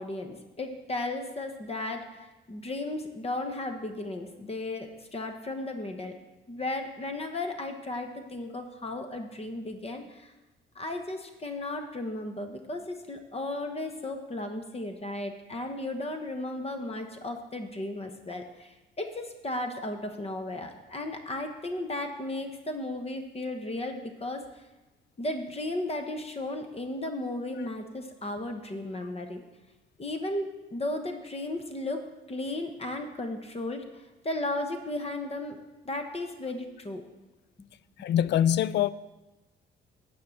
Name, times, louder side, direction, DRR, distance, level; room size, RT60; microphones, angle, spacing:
voice 1, 0.0-6.2 6.5-10.3 10.7-24.6 25.2-29.4 30.0-35.6 35.8-37.0, left 2 dB, 30° left, 1.2 m, -35 dB
voice 2, 38.0-38.9, left 10 dB, 65° left, 0.4 m, -24 dB
9.6 x 5.6 x 7.7 m
cardioid pair, 90°, 20 cm